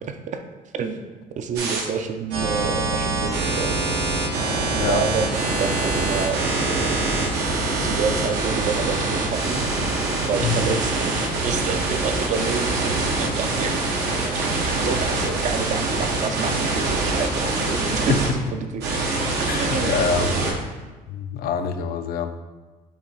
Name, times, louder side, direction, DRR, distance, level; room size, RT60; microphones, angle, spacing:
voice 1, 0.0-0.4 0.7-3.8 4.7-7.0 7.8-9.6 10.2-13.8 14.1-18.8 19.6-20.5, right 6 dB, 45° right, 7 dB, 0.4 m, -29 dB
sound 1, 1.6-1.8 2.3-18.3 18.8-20.5, right 2 dB, 80° right, 0.8 m, -24 dB
voice 2, 19.5-20.3 21.1-22.3, left 6 dB, 65° left, 9 dB, 0.4 m, -25 dB
5.5 x 2.3 x 4.1 m, 1.3 s
cardioid pair, 110°, 17 cm